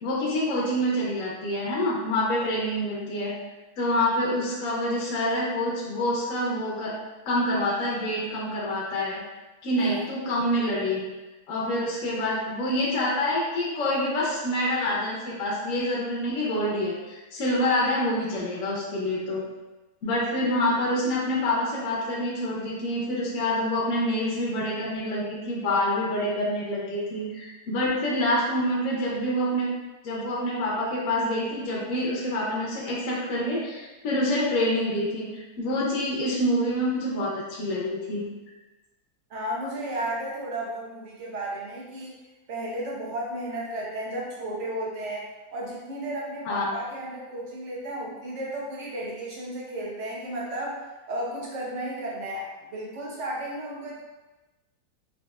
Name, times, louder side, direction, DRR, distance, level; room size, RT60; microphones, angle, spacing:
voice 1, 0.0-3.3 3.8-6.9 7.3-9.2 9.6-11.0 11.5-19.4 20.0-29.7 30.0-38.3 46.4-46.7, left 1 dB, 60° left, -5 dB, 0.9 m, -27 dB
voice 2, 39.3-42.2 42.5-54.0, right 1 dB, 55° right, -4 dB, 0.9 m, -34 dB
4.1 x 2.4 x 2.3 m, 1.1 s
omnidirectional pair, 1.8 m